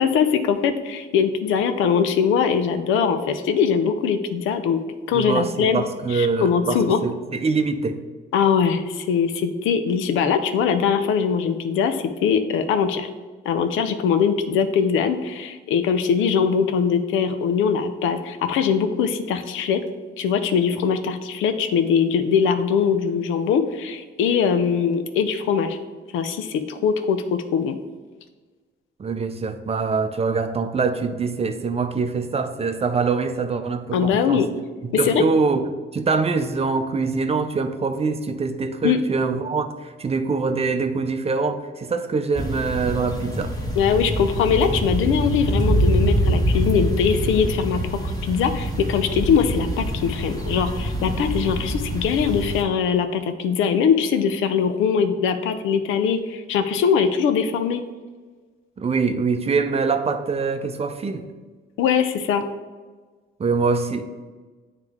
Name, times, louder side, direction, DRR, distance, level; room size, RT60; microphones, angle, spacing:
voice 1, 0.0-4.8 5.1-5.8 6.1-7.0 8.3-13.1 13.4-19.8 20.2-25.8 26.1-27.8 33.9-34.5 34.9-35.2 38.8-39.0 43.8-57.8 61.8-62.4, left 7 dB, 90° left, 9 dB, 0.6 m, -21 dB
voice 2, 5.1-8.0 29.0-34.4 34.8-43.5 58.8-61.3 63.4-64.1, right 4 dB, 30° right, 8 dB, 0.6 m, -24 dB
sound 1, 42.3-52.6, equal, 20° left, 1.4 m, -25 dB
9.0 x 3.3 x 3.5 m, 1.4 s
cardioid pair, 90°, 20 cm